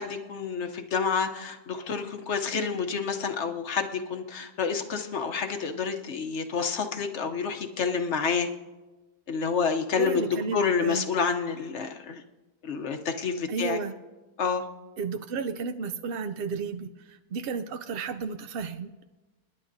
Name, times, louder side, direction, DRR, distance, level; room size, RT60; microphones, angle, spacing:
voice 1, 0.0-8.5 9.3-10.3 10.5-12.2 12.6-13.8 14.4-14.6, left 5 dB, 55° left, 5 dB, 1.0 m, -29 dB
voice 2, 10.0-11.1 13.5-14.0 15.0-19.0, right 5 dB, 80° right, 7 dB, 0.5 m, -33 dB
30.0 x 10.5 x 2.6 m, 1.2 s
omnidirectional pair, 1.6 m